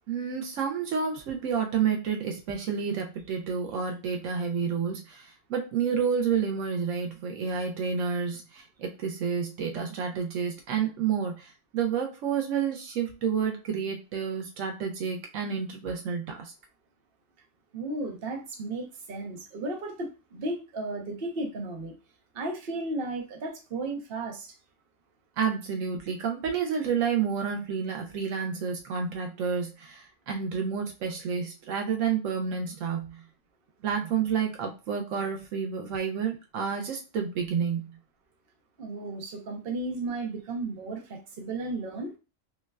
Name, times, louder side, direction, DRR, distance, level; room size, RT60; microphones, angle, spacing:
voice 1, 0.1-16.5 25.4-33.2 33.8-37.9, right 6 dB, 80° right, 3 dB, 1.0 m, -30 dB
voice 2, 17.7-21.9 22.3-24.5 38.8-42.1, right 2 dB, 50° right, 2 dB, 0.9 m, -34 dB
5.2 x 2.2 x 2.3 m, 0.29 s
omnidirectional pair, 1.3 m